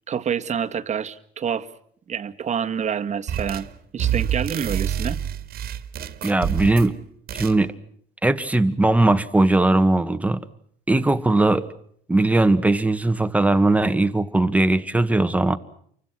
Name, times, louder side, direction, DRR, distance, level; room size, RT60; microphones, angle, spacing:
voice 1, 0.1-1.7 2.1-3.7 3.9-5.2, right 7 dB, 45° right, 7 dB, 1.8 m, -27 dB
sound 1, 3.3-3.7 4.0-6.9 7.3-7.6, right 9 dB, 65° right, 2.2 m, -27 dB
voice 2, 6.2-6.9 7.3-7.7 8.2-10.4 10.9-11.7 12.1-15.6, right 2 dB, 10° right, 10 dB, 1.7 m, -19 dB
29.5 x 24.5 x 6.0 m, 0.64 s
cardioid pair, 110°, 17 cm